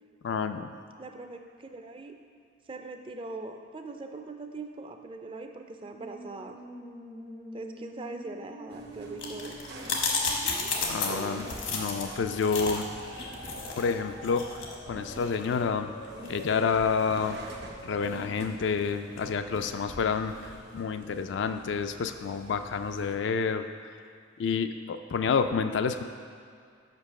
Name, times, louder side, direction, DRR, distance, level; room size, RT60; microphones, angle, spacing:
voice 1, 0.2-0.7 10.9-12.9 13.8-14.4 14.9-15.9 16.3-17.4 17.8-23.7 24.4-26.0, left 5 dB, 60° left, 8 dB, 0.3 m, -29 dB
voice 2, 1.0-2.1 2.7-6.6 7.5-9.6, right 3 dB, 25° right, 5 dB, 0.4 m, -41 dB
Musical instrument, 5.6-18.9, right 1 dB, 85° right, 1.5 m, -46 dB
sound 1, 8.7-23.2, right 1 dB, 55° right, 0.8 m, -47 dB
sound 2, 9.2-20.6, left 4 dB, 80° left, 1.1 m, -35 dB
5.3 x 5.2 x 6.4 m, 2.3 s
head